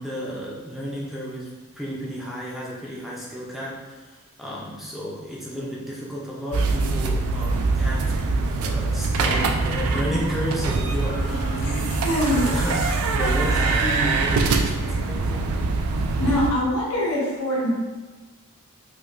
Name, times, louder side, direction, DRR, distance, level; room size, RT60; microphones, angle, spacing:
voice 1, 0.0-8.1 8.6-15.5, equal, ahead, -6 dB, 0.5 m, -32 dB
sound 1, 6.5-16.5, right 3 dB, 75° right, 0.4 m, -23 dB
sound 2, 10.7-15.1 16.1-16.3, left 1 dB, 40° left, 0.8 m, -38 dB
voice 2, 12.0-12.5 16.2-17.7, equal, 75° left, -6 dB, 1.1 m, -23 dB
5.1 x 2.2 x 2.4 m, 1.3 s
head